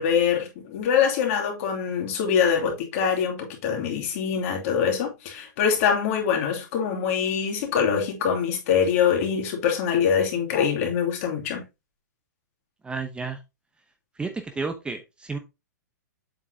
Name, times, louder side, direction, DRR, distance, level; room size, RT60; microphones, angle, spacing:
voice 1, 0.0-11.6, left 7 dB, 50° left, 2.7 m, -24 dB
voice 2, 12.8-13.4 14.2-15.4, right 4 dB, 10° right, 0.9 m, -31 dB
7.7 x 6.0 x 2.8 m
hypercardioid pair, 125°, 10 cm